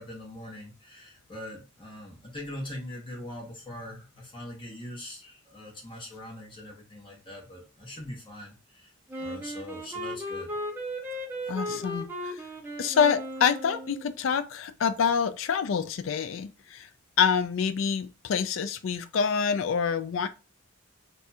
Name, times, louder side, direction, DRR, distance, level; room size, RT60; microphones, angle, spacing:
voice 1, 0.0-8.9 9.2-10.6, left 1 dB, 25° left, 1.0 m, -42 dB
Wind instrument woodwind instrument, 9.1-14.1, equal, 10° right, 0.6 m, -36 dB
voice 2, 11.5-12.4 12.8-16.9 17.2-20.3, left 6 dB, 70° left, 0.3 m, -26 dB
2.6 x 2.3 x 4.1 m
head